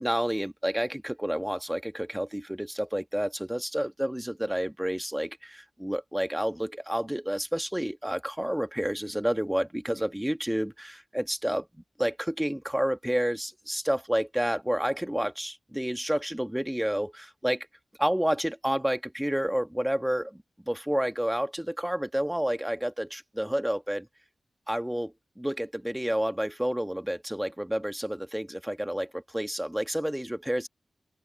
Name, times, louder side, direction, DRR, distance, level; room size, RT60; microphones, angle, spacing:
voice 1, 0.0-17.7 18.0-24.1 24.7-30.7, equal, 5° right, 1.4 m, -30 dB
open air
wide cardioid pair, 100°, 0 cm